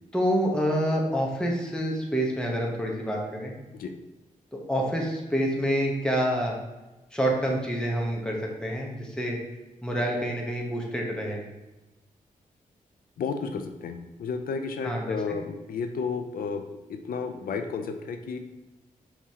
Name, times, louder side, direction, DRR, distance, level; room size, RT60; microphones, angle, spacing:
voice 1, 0.1-3.5 4.5-6.6 7.1-9.4 9.8-11.4 14.8-15.4, equal, 5° left, -1 dB, 1.0 m, -27 dB
voice 2, 13.2-16.6 16.9-18.4, left 5 dB, 80° left, 7 dB, 0.5 m, -32 dB
5.8 x 3.1 x 2.8 m, 1.1 s
cardioid pair, 80°, 15 cm